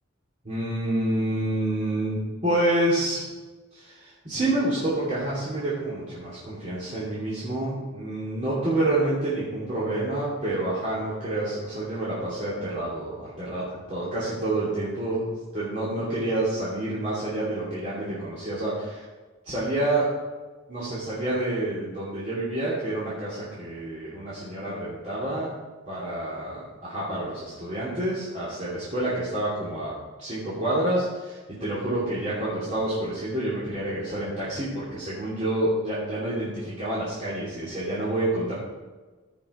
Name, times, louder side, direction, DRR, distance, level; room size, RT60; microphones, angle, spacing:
voice 1, 0.4-2.2 2.4-3.2 3.7-19.0 19.4-20.1 20.7-25.5 25.9-29.9 30.2-38.5, right 1 dB, 35° right, -10 dB, 2.7 m, -28 dB
14.5 x 5.8 x 4.9 m, 1.3 s
head